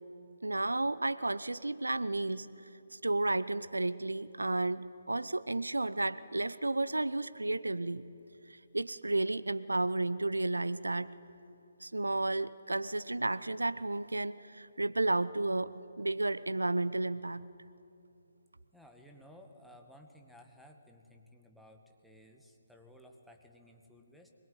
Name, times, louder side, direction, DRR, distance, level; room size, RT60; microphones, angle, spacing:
voice 1, 0.4-2.5 2.9-8.0 8.5-11.1 11.8-17.4, right 2 dB, 75° right, 16 dB, 0.8 m, -32 dB
voice 2, 18.7-24.3, left 1 dB, ahead, 1 dB, 1.8 m, -57 dB
25.0 x 22.5 x 9.7 m, 2.7 s
figure-of-eight pair, 140°, 0 cm